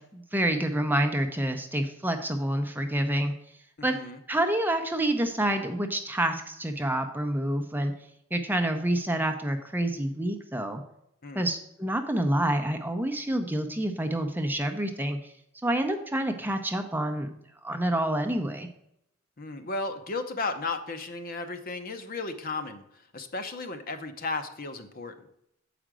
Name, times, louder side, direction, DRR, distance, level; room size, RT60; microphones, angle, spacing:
voice 1, 0.1-3.3 3.8-3.9 4.3-7.9 8.3-10.8 11.3-15.2 15.6-17.3 17.6-18.7, right 1 dB, 10° right, 5 dB, 0.7 m, -28 dB
voice 2, 3.8-4.2 11.2-11.5 19.4-25.3, left 3 dB, 45° left, 7 dB, 0.8 m, -35 dB
7.8 x 5.0 x 6.1 m, 0.77 s
head